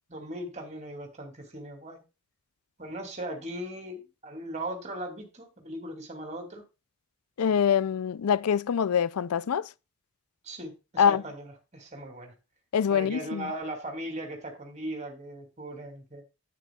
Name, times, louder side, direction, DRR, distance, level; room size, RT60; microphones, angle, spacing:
voice 1, 0.1-2.0 2.8-6.6 10.4-12.3 12.9-16.2, right 1 dB, 30° right, 2.8 m, -38 dB
voice 2, 7.4-9.7 11.0-11.2 12.7-13.5, left 7 dB, 85° left, 0.4 m, -24 dB
10.0 x 9.3 x 2.4 m
head